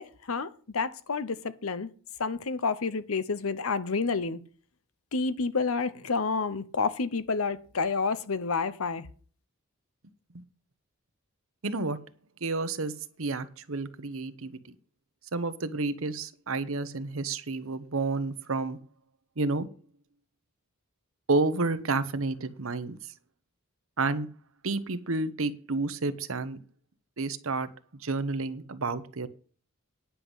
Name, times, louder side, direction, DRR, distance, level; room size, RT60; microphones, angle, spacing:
voice 1, 0.0-1.9 2.2-4.4 5.1-9.1, left 4 dB, 80° left, 0.9 m, -29 dB
voice 2, 11.6-12.0 12.4-14.6 15.3-18.8 19.4-19.7 21.3-23.1 24.0-24.3 24.6-26.6 27.2-27.7 28.0-29.3, right 3 dB, 70° right, 1.0 m, -30 dB
9.9 x 5.7 x 7.9 m
head